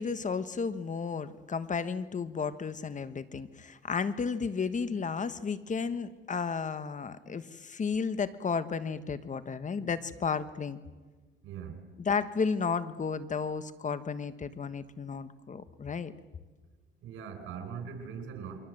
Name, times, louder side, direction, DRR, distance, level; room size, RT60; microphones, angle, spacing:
voice 1, 0.0-10.8 12.0-16.1, left 5 dB, 40° left, 12 dB, 1.3 m, -33 dB
voice 2, 17.0-18.6, right 7 dB, 85° right, 8 dB, 4.8 m, -40 dB
28.0 x 23.5 x 7.8 m, 1.3 s
cardioid pair, 90°, 20 cm